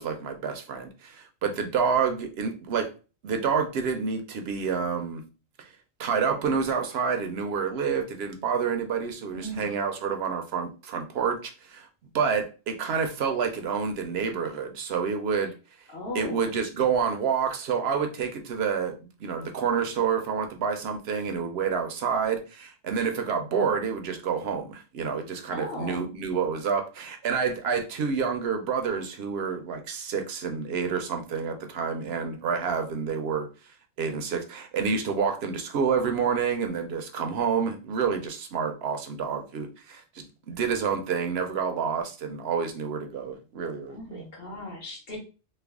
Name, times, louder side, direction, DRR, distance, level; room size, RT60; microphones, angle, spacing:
voice 1, 0.0-2.9 3.2-5.2 6.0-11.9 12.1-15.5 16.1-33.5 34.0-44.2, right 6 dB, 70° right, 5 dB, 0.8 m, -28 dB
voice 2, 9.3-9.8 15.9-16.5 25.5-26.1 43.9-45.2, left 1 dB, 60° left, -1 dB, 1.4 m, -37 dB
3.3 x 2.1 x 3.4 m, 0.34 s
omnidirectional pair, 1.2 m